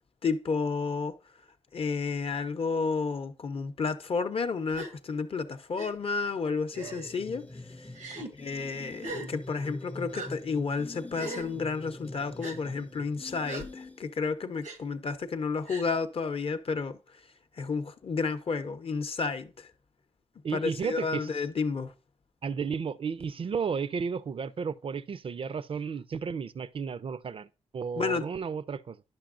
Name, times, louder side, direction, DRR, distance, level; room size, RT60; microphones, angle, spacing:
voice 1, 0.2-1.1 1.7-7.5 7.8-7.9 8.3-17.0 17.6-19.7 20.5-21.9 28.0-28.3, left 4 dB, 50° left, 0.6 m, -31 dB
Gasp, 4.7-4.9 5.8-5.9 6.7-7.1 7.9-8.3 9.0-9.3 10.1-10.3 11.1-11.5 12.4-12.6 13.4-13.7 14.6-14.8 15.7-15.9, right 2 dB, 85° right, 0.9 m, -39 dB
sound 1, 6.7-14.2, left 2 dB, 10° left, 0.4 m, -45 dB
voice 2, 20.4-21.4 22.4-27.5 27.7-29.0, right 6 dB, 45° right, 0.4 m, -33 dB
10.5 x 5.9 x 2.5 m
cardioid pair, 70°, 12 cm